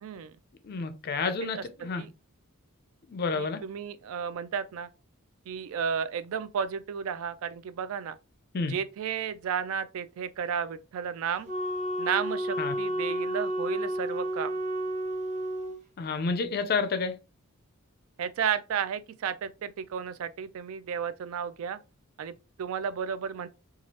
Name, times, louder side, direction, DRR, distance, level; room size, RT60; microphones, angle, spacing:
voice 1, 0.0-0.3 1.2-1.6 2.0-2.1 3.3-4.9 5.5-8.2 8.7-11.5 12.0-14.5 18.2-21.8 22.2-23.5, right 7 dB, 70° right, 0.3 m, -33 dB
voice 2, 0.6-2.0 3.1-3.6 8.5-8.7 12.6-12.7 16.0-17.2, left 4 dB, 45° left, 0.4 m, -30 dB
Wind instrument woodwind instrument, 11.5-15.8, right 1 dB, 35° right, 0.7 m, -31 dB
3.1 x 2.3 x 2.8 m
head